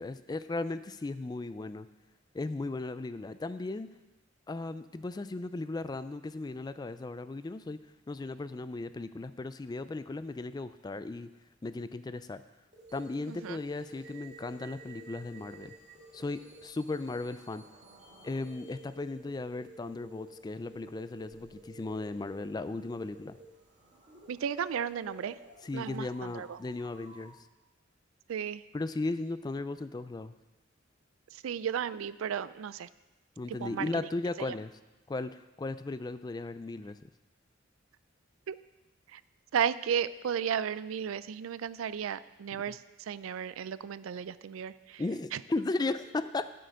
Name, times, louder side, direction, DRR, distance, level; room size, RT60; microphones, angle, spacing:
voice 1, 0.0-1.9 2.3-3.9 4.5-7.8 8.1-11.3 11.6-12.4 12.9-15.7 16.1-17.6 18.2-23.4 25.6-27.4 28.7-30.3 33.4-34.7 35.1-37.1 42.7-42.8 45.0-46.5, left 2 dB, 20° left, 13 dB, 0.3 m, -36 dB
sound 1, 12.7-27.3, right 2 dB, 40° right, 2.4 m, -52 dB
voice 2, 13.3-13.6 24.3-25.4 25.7-26.6 28.3-28.6 31.3-32.9 33.5-33.9 38.5-38.6 39.1-39.2 39.5-45.0 45.3-45.4, right 8 dB, 90° right, 17 dB, 0.4 m, -34 dB
8.9 x 7.6 x 5.2 m, 1.1 s
head